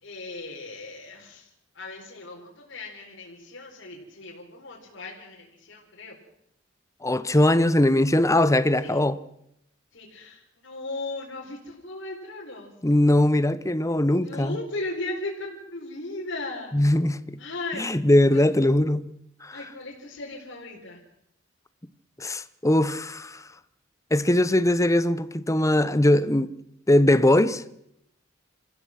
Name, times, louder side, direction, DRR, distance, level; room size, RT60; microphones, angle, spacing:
voice 1, 0.0-1.5 1.7-6.2 8.8-9.0 9.9-12.7 14.2-16.7 17.4-17.9 18.3-18.4 19.5-21.0, left 2 dB, 65° left, 4.5 m, -37 dB
voice 2, 7.0-9.2 12.8-14.6 16.7-17.4 17.8-19.0 19.4-19.6 22.2-23.4 24.1-26.5 26.9-27.6, left 1 dB, 15° left, 1.0 m, -21 dB
27.5 x 16.0 x 6.0 m
head